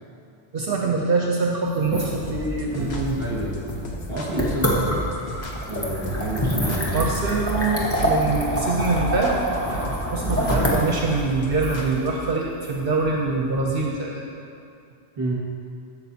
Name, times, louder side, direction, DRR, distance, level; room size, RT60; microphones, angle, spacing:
voice 1, 0.5-3.1 6.9-14.2, right 3 dB, 60° right, -1 dB, 0.9 m, -24 dB
sound 1, 1.7-13.6, equal, 15° left, 1.1 m, -27 dB
sound 2, 2.3-12.3, equal, 70° left, 1.2 m, -35 dB
voice 2, 2.7-3.6 4.1-5.1 5.5-7.2 15.2-15.3, right 2 dB, 30° right, -5 dB, 1.8 m, -30 dB
12.5 x 7.1 x 2.8 m, 2.5 s
omnidirectional pair, 1.1 m